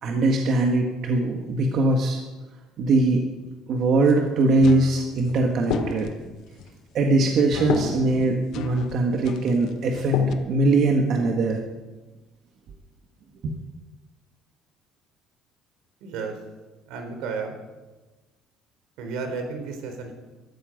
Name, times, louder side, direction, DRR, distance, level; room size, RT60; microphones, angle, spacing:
voice 1, 0.0-2.2 2.8-3.2 3.7-6.1 6.9-11.6 13.4-13.5, right 2 dB, 50° right, 2 dB, 1.8 m, -21 dB
sound 1, 4.0-10.5 11.0-11.7, left 5 dB, 85° left, 3.8 m, -34 dB
sound 2, 4.6-6.2 7.5-10.3, left 10 dB, 60° left, 1.1 m, -36 dB
voice 2, 16.0-16.4 16.9-17.6 19.0-20.1, right 4 dB, 80° right, 5 dB, 3.8 m, -32 dB
18.5 x 14.0 x 5.3 m, 1.2 s
cardioid pair, 135°, 0 cm